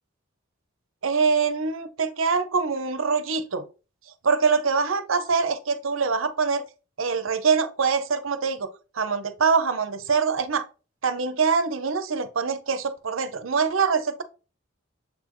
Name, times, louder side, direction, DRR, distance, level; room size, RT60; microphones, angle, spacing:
voice 1, 1.0-3.6 4.2-6.6 7.0-8.7 8.9-10.6 11.0-14.2, right 5 dB, 75° right, 11 dB, 0.8 m, -24 dB
7.2 x 4.3 x 3.1 m, 0.34 s
head